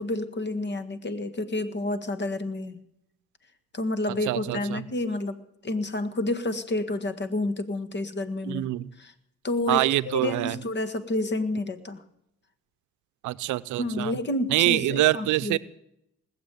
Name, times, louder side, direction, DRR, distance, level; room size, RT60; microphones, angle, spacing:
voice 1, 0.0-2.8 3.7-5.3 5.6-8.7 9.0-9.1 9.4-12.0 13.8-15.6, left 2 dB, 35° left, 11 dB, 1.8 m, -29 dB
voice 2, 4.3-4.8 8.5-8.8 9.7-10.6 13.2-14.1 14.5-15.6, right 16 dB, 80° right, 15 dB, 0.7 m, -25 dB
20.0 x 7.5 x 9.2 m, 0.78 s
cardioid pair, 80°, 29 cm